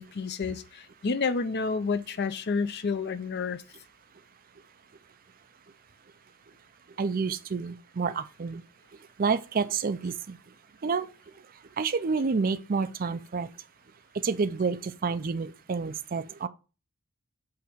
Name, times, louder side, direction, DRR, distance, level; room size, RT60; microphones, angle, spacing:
voice 1, 0.0-3.6, left 4 dB, 50° left, 0.5 m, -30 dB
voice 2, 7.0-8.6 9.2-10.4 10.8-11.1 11.8-13.5 14.1-16.5, right 5 dB, 40° right, 0.4 m, -29 dB
8.5 x 2.9 x 6.1 m
head